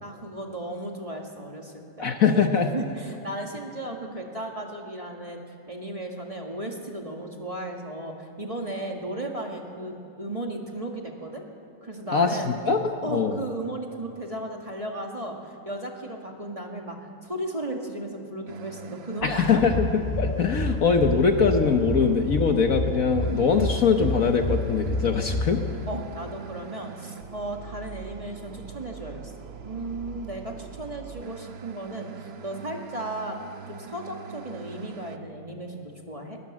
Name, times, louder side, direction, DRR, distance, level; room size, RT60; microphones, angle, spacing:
voice 1, 0.0-1.8 2.2-2.4 2.7-5.4 5.7-11.4 11.8-12.5 13.0-19.6 25.9-29.3 29.6-33.4 33.7-36.4, right 1 dB, 20° right, 1 dB, 1.8 m, -35 dB
voice 2, 2.0-2.7 12.1-13.4 19.2-25.6, left 5 dB, 55° left, 5 dB, 1.3 m, -22 dB
sound 1, 18.5-35.2, right 7 dB, 55° right, 0.7 m, -42 dB
sound 2, 19.5-26.0, left 2 dB, 20° left, 1.0 m, -30 dB
20.5 x 20.5 x 7.4 m, 2.7 s
omnidirectional pair, 1.9 m